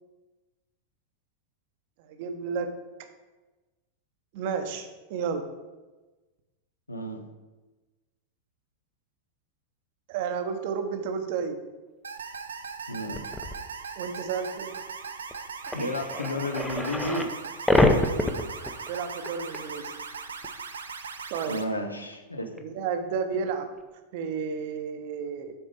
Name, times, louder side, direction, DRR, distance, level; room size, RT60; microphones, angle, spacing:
voice 1, 2.1-2.7 4.3-5.5 10.1-11.6 14.0-14.7 18.9-19.9 21.3-21.6 22.6-23.7 24.1-25.5, right 6 dB, 50° right, 7 dB, 0.8 m, -31 dB
voice 2, 6.9-7.2 12.9-13.3 15.7-17.3 21.5-22.5, left 1 dB, 80° left, 5 dB, 0.8 m, -32 dB
sound 1, 12.0-21.6, right 5 dB, 70° right, 0.5 m, -39 dB
sound 2, 13.1-13.6 14.9-15.0 15.3-15.4 15.7-17.3 17.7-19.3 19.5-19.6 20.4-20.5 22.6-22.7, left 2 dB, 5° left, 0.6 m, -25 dB
7.3 x 4.4 x 5.0 m, 1.2 s
figure-of-eight pair, 90°, 0 cm